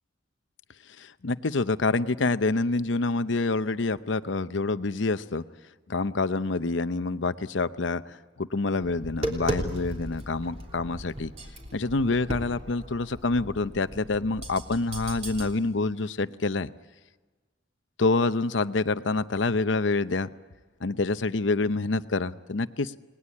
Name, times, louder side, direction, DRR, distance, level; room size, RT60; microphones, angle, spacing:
voice 1, 1.0-5.4 5.9-11.3 11.7-16.7 18.0-20.3 20.8-22.9, left 3 dB, 85° left, 13 dB, 0.8 m, -27 dB
Tap, 8.8-15.5, right 1 dB, 35° right, 3.4 m, -36 dB
29.5 x 19.5 x 8.6 m, 1.3 s
head